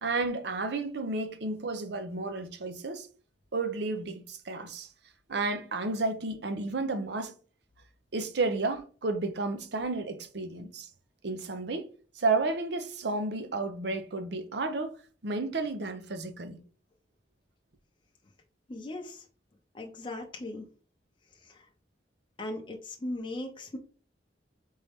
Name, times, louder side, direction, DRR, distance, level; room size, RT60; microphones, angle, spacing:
voice 1, 0.0-3.1 3.5-4.9 5.3-7.3 8.1-10.9 11.2-11.9 12.1-15.0 15.2-16.6, right 3 dB, 70° right, 0.7 m, -32 dB
voice 2, 18.7-19.2 19.7-20.6 21.4-21.7 22.4-23.8, left 1 dB, 30° left, 0.6 m, -38 dB
4.1 x 3.6 x 3.5 m
head